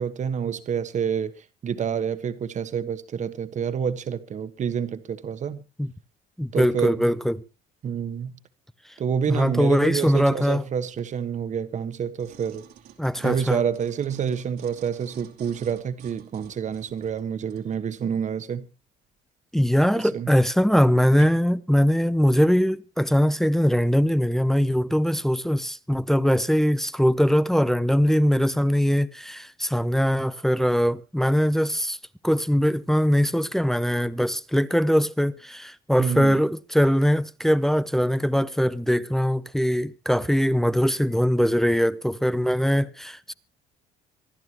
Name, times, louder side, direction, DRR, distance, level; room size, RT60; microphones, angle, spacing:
voice 1, 0.0-5.6 6.5-7.1 7.8-8.3 9.0-12.6 13.2-18.7 19.9-20.3 21.2-21.3 36.0-36.4, right 7 dB, 45° right, 1.4 m, -28 dB
voice 2, 6.4-7.4 9.3-10.6 13.0-13.6 19.5-32.0 32.2-43.3, equal, ahead, 0.6 m, -21 dB
sound 1, 12.2-17.7 18.3-18.4, right 10 dB, 75° right, 2.7 m, -50 dB
26.0 x 11.5 x 3.0 m
cardioid pair, 110°, 17 cm